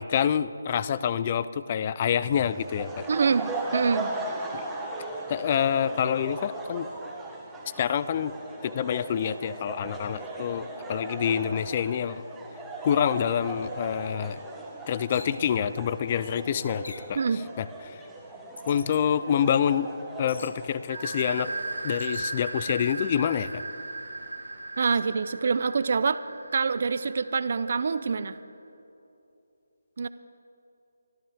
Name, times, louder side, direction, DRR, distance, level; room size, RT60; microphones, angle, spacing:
voice 1, 0.0-3.1 4.5-4.6 5.3-6.9 7.8-8.3 8.6-12.2 12.8-14.4 14.9-17.2 17.6-18.0 18.7-19.9 20.2-21.5 21.8-23.6, left 8 dB, 30° left, 16 dB, 0.5 m, -27 dB
sound 1, 2.2-21.6, right 2 dB, 5° right, 1.4 m, -38 dB
voice 2, 3.1-4.2 17.1-17.4 24.8-26.2 26.5-28.4 30.0-30.1, right 5 dB, 50° right, 14 dB, 0.6 m, -26 dB
sound 2, 15.1-15.4 16.8-17.2 18.6-19.0 20.3-20.6 22.0-22.3, left 3 dB, 70° left, 1.2 m, -44 dB
sound 3, 20.9-28.4, right 2 dB, 85° right, 2.0 m, -37 dB
25.0 x 12.5 x 3.6 m, 2.9 s
figure-of-eight pair, 160°, 0 cm